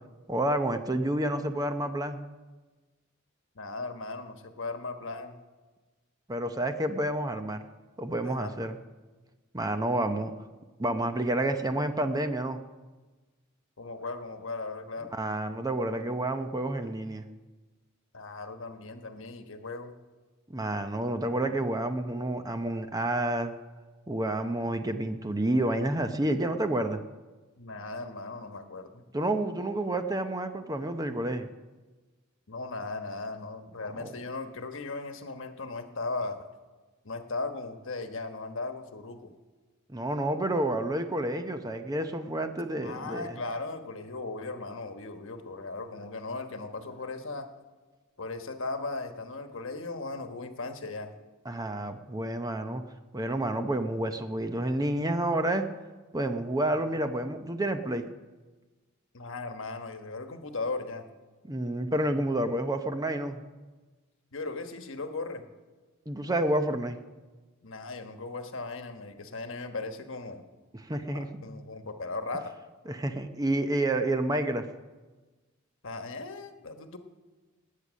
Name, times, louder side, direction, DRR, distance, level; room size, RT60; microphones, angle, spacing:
voice 1, 0.3-2.2 6.3-7.6 8.0-8.8 9.5-10.3 10.8-12.6 15.1-17.3 20.5-23.5 24.1-27.0 29.1-31.5 34.0-34.1 39.9-43.4 51.5-52.8 53.1-55.7 56.1-58.1 61.5-63.4 66.1-67.0 70.7-71.3 72.9-74.6, right 1 dB, 20° right, 7 dB, 0.7 m, -29 dB
voice 2, 3.5-5.4 8.2-8.5 13.8-15.1 18.1-19.9 27.6-29.0 32.5-36.4 37.0-39.3 42.8-47.5 48.2-51.1 59.1-61.1 64.3-65.4 67.6-70.4 71.1-72.5 75.8-77.0, left 3 dB, 65° left, 7 dB, 1.2 m, -37 dB
19.5 x 8.4 x 6.3 m, 1.3 s
head